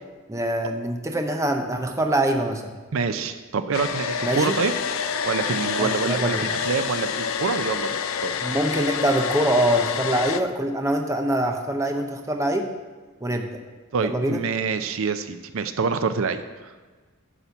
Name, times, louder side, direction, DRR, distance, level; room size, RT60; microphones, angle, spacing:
voice 1, 0.3-2.7 4.2-4.6 5.8-6.5 8.4-12.7 13.2-13.6 14.0-14.4, right 1 dB, 15° right, 4 dB, 0.7 m, -24 dB
voice 2, 2.9-4.7 5.2-8.3 13.9-16.7, right 5 dB, 70° right, 10 dB, 0.5 m, -26 dB
Domestic sounds home sounds, 3.7-10.4, left 7 dB, 70° left, 0.5 m, -27 dB
11.0 x 4.3 x 7.0 m, 1.3 s
head